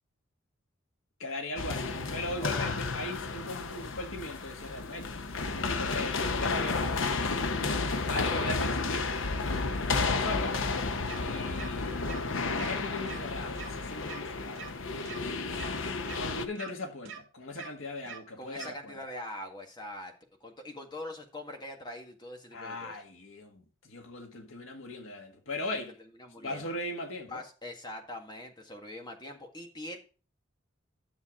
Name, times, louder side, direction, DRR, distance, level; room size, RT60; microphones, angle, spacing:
voice 1, 1.2-5.3 5.7-6.9 8.1-10.6 11.2-12.2 12.5-14.6 16.2-18.9 22.5-25.9 26.4-27.4, left 2 dB, 85° left, 1.8 m, -39 dB
sound 1, 1.6-16.5, left 3 dB, 70° left, 0.8 m, -32 dB
voice 2, 2.4-2.8 8.1-8.6 18.4-20.1 20.4-23.0 25.7-26.7 27.3-30.0, left 1 dB, 20° left, 1.7 m, -43 dB
sound 2, 11.1-11.2 11.6-11.7 12.1-12.2 12.6-12.7 13.0-13.2 13.6-13.7 14.1-14.2 14.6-14.7 15.1-15.2 15.6-15.7 16.1-16.2 16.6-16.7 17.1-17.2 17.6-17.7 18.1-18.2 18.6-18.7, right 8 dB, 65° right, 1.8 m, -43 dB
10.5 x 6.8 x 3.7 m
head